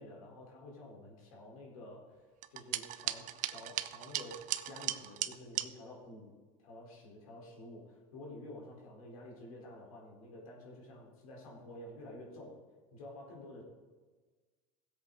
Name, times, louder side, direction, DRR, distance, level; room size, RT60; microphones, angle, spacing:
voice 1, 0.0-2.2 2.5-6.3 6.6-12.6 12.9-13.6, left 1 dB, 90° left, -2 dB, 4.0 m, -50 dB
sound 1, 2.4-5.7, right 14 dB, 45° right, 0.6 m, -37 dB
17.0 x 8.0 x 3.9 m, 1.4 s
supercardioid pair, 105°, 18 cm